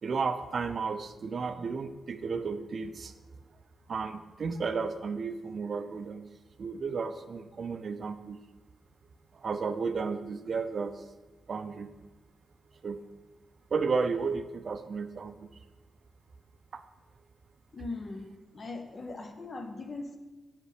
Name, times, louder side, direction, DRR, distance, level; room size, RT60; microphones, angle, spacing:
voice 1, 0.0-3.1 3.9-6.3 6.6-8.4 9.3-11.0 11.5-11.9 12.8-13.0 13.7-15.3 16.7-16.8, right 5 dB, 55° right, 10 dB, 0.4 m, -33 dB
voice 2, 17.7-18.2 18.5-20.2, left 3 dB, 40° left, 5 dB, 0.7 m, -39 dB
5.3 x 5.2 x 4.8 m, 1.2 s
cardioid pair, 80°, 0 cm